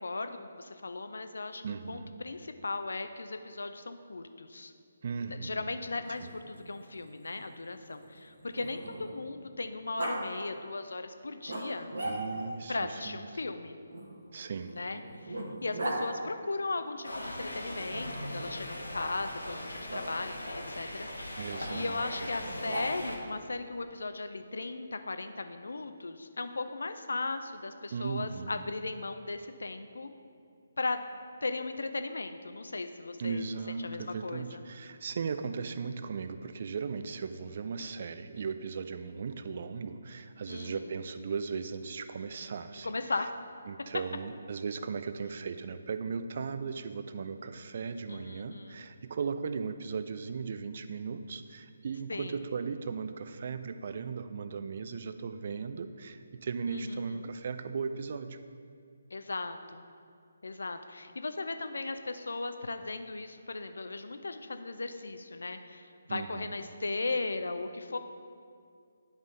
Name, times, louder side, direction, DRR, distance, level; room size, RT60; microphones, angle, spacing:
voice 1, 0.0-4.7 5.3-11.9 12.7-13.8 14.7-21.4 21.7-30.1 30.8-31.0 31.4-33.4 33.8-34.6 40.5-40.8 42.8-43.3 48.1-48.9 52.1-52.4 56.7-57.3 59.1-59.8 60.4-68.0, left 3 dB, 70° left, 8 dB, 0.4 m, -37 dB
voice 2, 1.6-2.1 5.0-5.8 6.2-6.3 12.0-13.4 14.3-14.8 21.3-22.5 27.9-28.7 33.2-42.9 43.7-58.4 66.1-66.5, right 5 dB, 50° right, 10 dB, 0.3 m, -37 dB
Growling, 5.9-9.3 10.0-10.2 11.5-12.6 13.9-16.0 17.9-18.6 19.9-20.0 22.4-23.2, right 1 dB, 65° right, 1.2 m, -39 dB
sound 1, 17.0-23.2, left 1 dB, 85° left, 1.0 m, -40 dB
10.5 x 3.6 x 3.8 m, 2.3 s
figure-of-eight pair, 145°, 0 cm